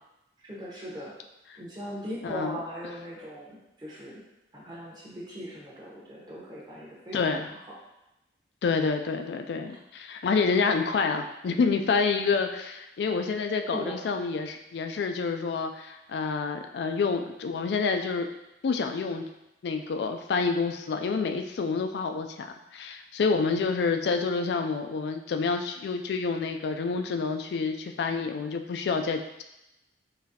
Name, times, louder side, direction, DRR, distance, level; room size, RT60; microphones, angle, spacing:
voice 1, 0.4-1.1 1.6-4.2 4.5-7.6 13.7-14.0, equal, 25° right, -5 dB, 0.9 m, -39 dB
voice 2, 2.2-2.6 7.1-7.5 8.6-18.3 18.6-19.3 19.6-29.4, left 4 dB, 65° left, 6 dB, 0.3 m, -28 dB
3.9 x 3.0 x 2.8 m, 0.90 s
head